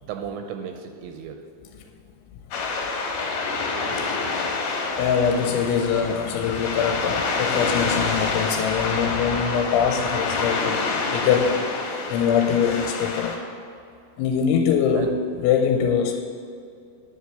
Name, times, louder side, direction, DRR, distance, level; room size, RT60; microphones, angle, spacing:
voice 1, 0.0-1.4 3.2-3.3 4.2-4.4 5.4-5.5 9.9-10.1 14.5-15.1, right 8 dB, 85° right, 5 dB, 2.7 m, -36 dB
sound 1, 2.5-13.4, left 3 dB, 65° left, 2.5 m, -27 dB
voice 2, 5.0-11.6 12.1-13.4 14.2-16.2, left 7 dB, 85° left, 4 dB, 2.9 m, -23 dB
10.0 x 5.3 x 7.9 m, 2.5 s
omnidirectional pair, 5.4 m